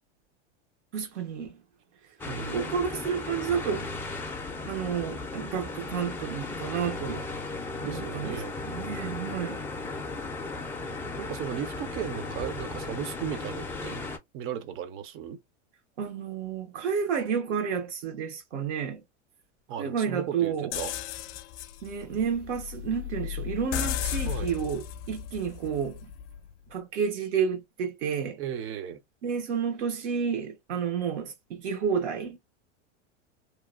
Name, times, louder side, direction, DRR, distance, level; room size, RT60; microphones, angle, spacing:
voice 1, 0.9-1.6 2.4-3.9 4.6-7.2 7.8-9.6 16.0-19.0 19.8-20.7 21.8-26.1 26.7-28.4 29.2-32.4, right 7 dB, 70° right, 1.2 m, -30 dB
sound 1, 2.2-14.2, left 3 dB, 5° left, 0.4 m, -36 dB
voice 2, 2.3-2.8 7.8-8.6 11.2-15.4 19.7-21.0 24.3-24.5 28.4-29.0, right 9 dB, 35° right, 0.6 m, -36 dB
sound 2, 20.7-26.5, left 10 dB, 70° left, 0.5 m, -35 dB
2.9 x 2.1 x 2.4 m
hypercardioid pair, 115°, 36 cm